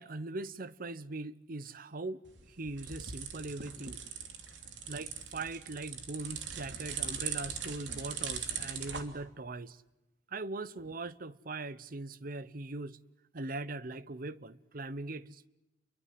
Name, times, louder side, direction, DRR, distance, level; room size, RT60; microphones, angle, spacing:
voice 1, 0.0-4.0 4.9-9.8 10.3-13.0 13.3-15.5, right 2 dB, 50° right, 0.9 m, -41 dB
sound 1, 2.3-9.0, right 7 dB, 85° right, 3.0 m, -40 dB
30.0 x 23.5 x 7.7 m
head